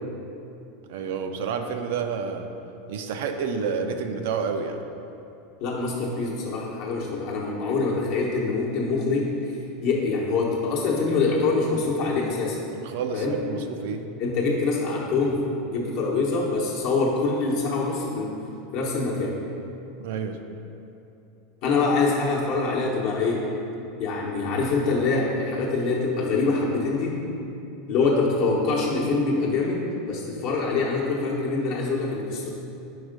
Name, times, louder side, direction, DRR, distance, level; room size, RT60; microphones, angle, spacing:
voice 1, 0.9-2.5 2.9-4.8 12.8-14.0 20.0-20.4, right 6 dB, 70° right, 6 dB, 0.4 m, -29 dB
voice 2, 5.6-9.3 9.8-12.6 13.1-13.4 14.2-18.4 18.7-19.4 21.6-23.4 24.0-27.2 27.9-32.5, left 3 dB, 55° left, -4 dB, 0.9 m, -25 dB
4.8 x 4.3 x 5.1 m, 2.8 s
supercardioid pair, 150°, 0 cm